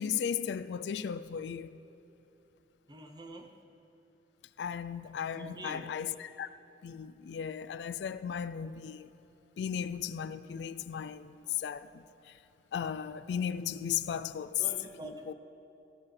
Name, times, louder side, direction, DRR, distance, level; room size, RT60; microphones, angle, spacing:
voice 1, 0.0-1.8 4.6-6.5 6.8-9.1 9.6-12.4 12.7-14.6 15.3-15.4, left 8 dB, 70° left, 0.3 m, -36 dB
voice 2, 2.9-3.5 5.4-5.9 14.6-15.3, right 1 dB, 25° right, 0.7 m, -45 dB
14.0 x 11.5 x 3.2 m
head